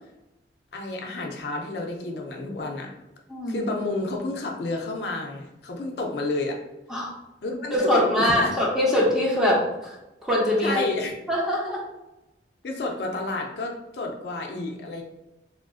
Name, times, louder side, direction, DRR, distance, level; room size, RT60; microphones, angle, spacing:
voice 1, 0.7-2.9 3.5-6.6 7.4-8.5 10.6-11.2 12.6-15.0, left 2 dB, 65° left, 1 dB, 0.5 m, -30 dB
voice 2, 3.3-3.7 6.9-7.1 7.7-10.0 10.2-10.8 11.3-11.8, left 1 dB, 5° right, -5 dB, 0.7 m, -23 dB
3.6 x 2.4 x 2.3 m, 0.94 s
head